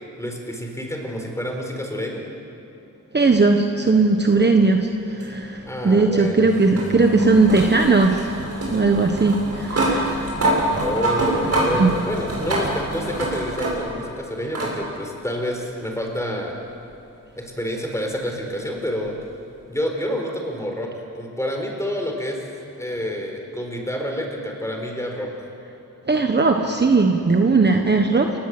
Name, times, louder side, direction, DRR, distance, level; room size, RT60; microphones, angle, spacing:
voice 1, 0.2-2.2 5.7-6.5 10.8-16.6 17.4-19.1 19.7-20.9 21.1-22.4 22.8-25.3, equal, 10° left, 2 dB, 4.4 m, -28 dB
voice 2, 3.1-8.3 8.7-10.3 11.7-12.0 26.1-28.4, right 3 dB, 35° right, 4 dB, 1.3 m, -18 dB
sound 1, 5.2-14.1 14.5-14.7 16.1-16.2 19.1-19.2, right 1 dB, 50° right, 7.2 m, -25 dB
29.5 x 18.5 x 7.9 m, 2.7 s
wide cardioid pair, 125°, 32 cm